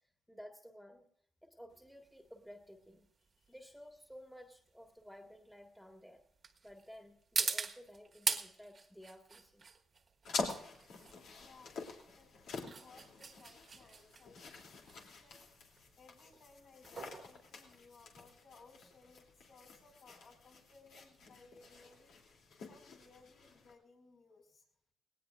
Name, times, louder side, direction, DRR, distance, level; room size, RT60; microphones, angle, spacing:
voice 1, 0.3-1.1 1.4-3.1 3.5-6.2 6.6-9.7, equal, ahead, 3 dB, 1.7 m, -54 dB
sound 1, 1.7-18.4, right 5 dB, 45° right, 1.4 m, -43 dB
sound 2, 10.2-23.7, left 3 dB, 80° left, 2.9 m, -47 dB
voice 2, 11.4-15.4 15.7-22.1 22.6-24.6, left 3 dB, 65° left, -1 dB, 5.6 m, -62 dB
19.0 x 18.0 x 2.5 m, 0.66 s
cardioid pair, 85°, 0 cm